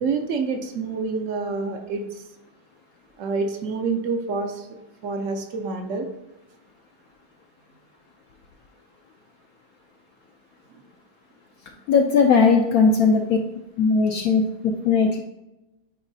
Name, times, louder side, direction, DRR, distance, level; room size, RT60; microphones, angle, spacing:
voice 1, 0.0-2.1 3.2-4.7 5.0-6.1 13.1-13.2, right 4 dB, 60° right, 5 dB, 0.8 m, -27 dB
voice 2, 11.9-13.4 13.8-14.4 14.8-15.2, left 5 dB, 70° left, 3 dB, 0.9 m, -18 dB
9.0 x 4.0 x 2.7 m, 0.95 s
omnidirectional pair, 1.8 m